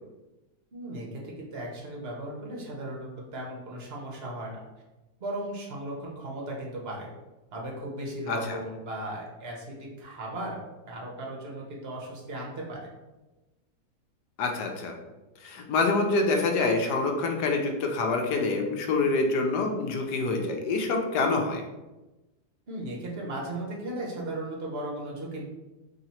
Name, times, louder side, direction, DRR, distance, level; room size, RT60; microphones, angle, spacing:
voice 1, 0.7-4.6 5.2-7.1 7.5-10.6 10.9-12.9 22.7-25.4, right 1 dB, 50° right, -2 dB, 0.9 m, -36 dB
voice 2, 8.3-8.6 14.4-14.9 15.4-21.6, left 3 dB, 80° left, 3 dB, 1.2 m, -26 dB
3.1 x 2.8 x 4.2 m, 1.1 s
omnidirectional pair, 1.7 m